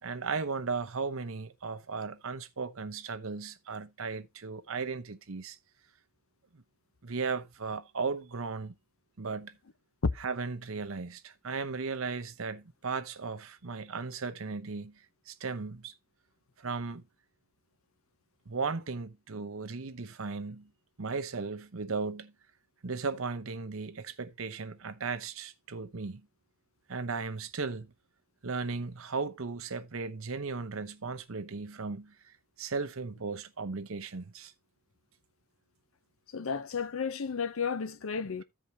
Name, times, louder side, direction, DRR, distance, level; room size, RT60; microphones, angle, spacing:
voice 1, 0.0-5.6 6.5-6.6 7.0-8.7 9.2-9.6 10.2-15.9 16.6-17.0 18.5-20.7 21.0-22.3 22.8-26.2 26.9-27.9 28.4-34.5, right 4 dB, 65° right, 0.8 m, -36 dB
voice 2, 36.3-38.4, left 5 dB, 70° left, 0.6 m, -32 dB
15.0 x 5.0 x 2.7 m
head